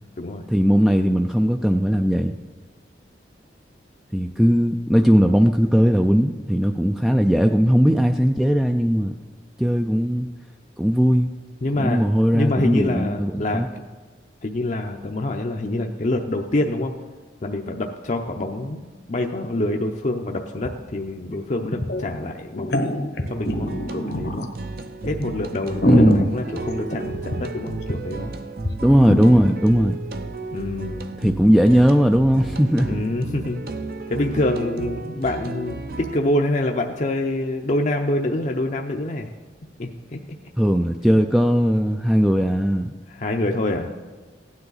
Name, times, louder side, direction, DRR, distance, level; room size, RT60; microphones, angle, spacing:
voice 1, 0.5-2.4 4.1-9.1 9.6-10.3 10.8-11.3 11.7-13.7 25.9-26.3 28.8-30.0 31.2-33.0 40.6-42.9, equal, ahead, 5 dB, 0.3 m, -18 dB
voice 2, 11.6-12.1 12.3-13.6 14.4-16.9 17.4-18.8 19.1-24.5 25.0-28.3 30.5-31.2 32.8-33.6 34.1-39.3 39.8-40.2 43.1-43.9, left 1 dB, 45° left, 2 dB, 0.6 m, -26 dB
sound 1, 20.6-20.7 21.0-21.1 21.6-22.1 22.5-24.5 25.0-25.1 25.5-27.6 27.9-28.0 28.2-28.3 28.6-28.7 29.1-29.2, equal, 65° left, 1.1 m, -23 dB
sound 2, 23.2-36.2, right 3 dB, 55° right, 0.6 m, -34 dB
16.0 x 9.6 x 4.0 m, 1.3 s
head